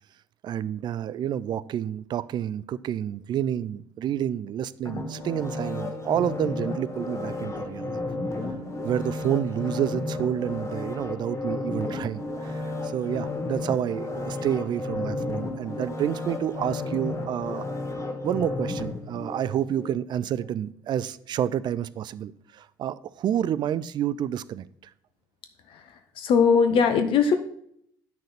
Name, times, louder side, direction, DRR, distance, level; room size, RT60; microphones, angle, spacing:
voice 1, 0.4-8.1 8.8-17.6 18.2-24.9, right 10 dB, 45° right, 0.4 m, -29 dB
sound 1, 4.9-19.9 20.3-20.4, left 2 dB, 30° left, 1.5 m, -32 dB
voice 2, 25.7-27.3, left 6 dB, 55° left, 0.8 m, -21 dB
8.5 x 6.4 x 4.2 m
figure-of-eight pair, 55°, 11 cm